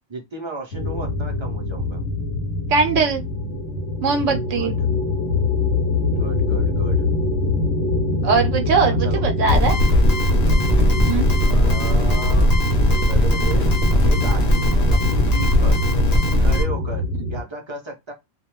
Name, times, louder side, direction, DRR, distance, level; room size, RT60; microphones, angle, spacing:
voice 1, 0.1-2.0 4.5-4.9 6.1-7.1 8.9-9.3 11.4-13.7 14.0-15.8 16.4-18.1, right 3 dB, 40° right, 0.4 m, -34 dB
sound 1, 0.7-17.4, left 2 dB, 70° left, 0.9 m, -23 dB
voice 2, 2.7-3.2 4.0-4.7 8.2-9.7 11.1-11.3, right 5 dB, 80° right, 0.9 m, -20 dB
sound 2, 9.5-16.6, left 1 dB, 40° left, 0.7 m, -19 dB
2.3 x 2.1 x 2.9 m
omnidirectional pair, 1.3 m